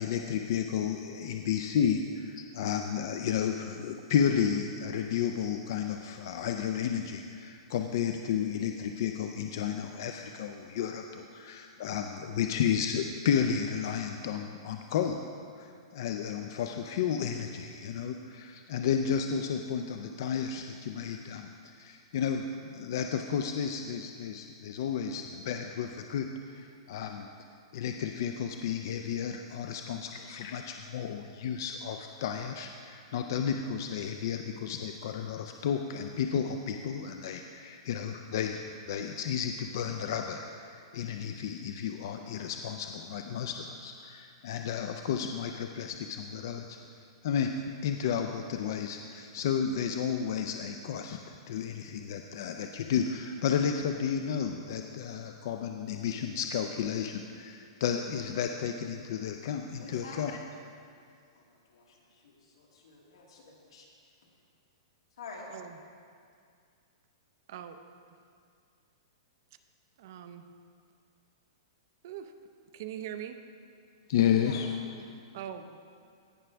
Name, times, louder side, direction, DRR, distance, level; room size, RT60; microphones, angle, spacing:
voice 1, 0.0-15.2 15.6-15.7 15.9-21.5 21.7-27.3 27.7-46.8 47.2-47.5 47.8-60.3 74.1-74.7 75.0-75.1, left 8 dB, 45° left, 5 dB, 0.4 m, -32 dB
voice 2, 59.8-60.3 61.4-61.5 61.7-61.8 62.2-63.9 65.2-65.5 74.3-74.6, left 4 dB, 85° left, -2 dB, 2.1 m, -47 dB
voice 3, 70.0-70.4 72.0-72.3 72.7-73.4 75.3-75.7, right 10 dB, 40° right, 8 dB, 0.5 m, -41 dB
16.5 x 6.0 x 3.4 m, 2.3 s
hypercardioid pair, 175°, 3 cm